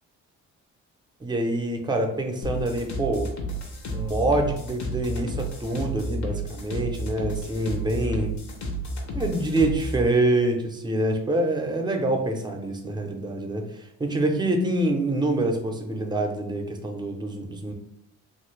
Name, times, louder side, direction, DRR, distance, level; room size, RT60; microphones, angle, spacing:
voice 1, 1.2-3.3 3.9-8.3 9.1-17.7, right 1 dB, 15° right, 4 dB, 0.5 m, -26 dB
sound 1, 2.4-10.0, right 1 dB, 65° left, 0.8 m, -31 dB
2.7 x 2.4 x 3.1 m, 0.77 s
cardioid pair, 90°, 30 cm